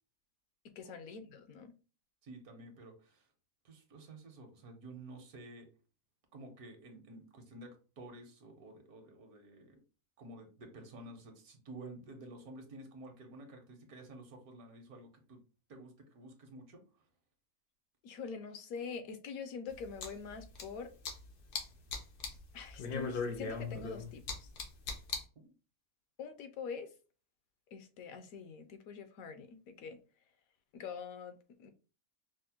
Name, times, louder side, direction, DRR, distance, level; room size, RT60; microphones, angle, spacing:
voice 1, 0.8-1.7 18.0-20.9 22.5-24.2 26.2-26.9 27.7-30.0 30.7-31.7, left 5 dB, 75° left, 8 dB, 1.0 m, -44 dB
voice 2, 2.2-3.3 3.6-5.6 6.3-9.8 10.2-15.4 15.7-16.8 25.4-25.5, right 2 dB, 75° right, 5 dB, 1.4 m, -51 dB
sound 1, 19.7-20.7 21.1-21.6 21.9-22.4 22.7-25.2, left 4 dB, 90° left, 1.4 m, -38 dB
5.1 x 2.0 x 2.8 m, 0.35 s
omnidirectional pair, 1.6 m